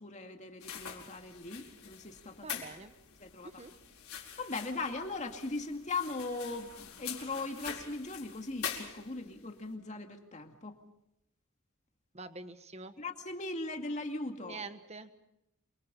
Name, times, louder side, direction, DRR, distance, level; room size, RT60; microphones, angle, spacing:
voice 1, 0.0-2.6 3.2-3.6 4.4-10.8 13.0-14.6, left 3 dB, 35° left, 4 dB, 2.3 m, -39 dB
sound 1, 0.6-9.4, left 8 dB, 85° left, 4.7 m, -45 dB
voice 2, 2.4-3.0 3.4-3.7 12.1-12.9 14.4-15.1, right 3 dB, 30° right, 9 dB, 1.4 m, -45 dB
27.5 x 24.0 x 5.5 m, 0.82 s
head